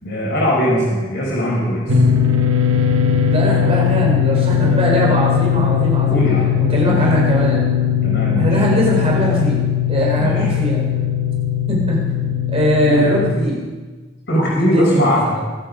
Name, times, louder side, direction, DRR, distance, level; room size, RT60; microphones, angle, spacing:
voice 1, 0.0-2.0 6.1-6.5 6.8-7.0 8.0-8.5 10.2-10.5 12.8-13.1 14.3-15.4, equal, 55° left, -4 dB, 5.1 m, -20 dB
sound 1, 1.9-13.3, left 8 dB, 85° right, 1.3 m, -18 dB
voice 2, 3.3-7.7 8.3-9.6 9.9-10.8 11.7-12.0 12.5-13.6 14.3-15.4, equal, 30° right, -3 dB, 4.0 m, -20 dB
23.0 x 9.1 x 5.2 m, 1.3 s
head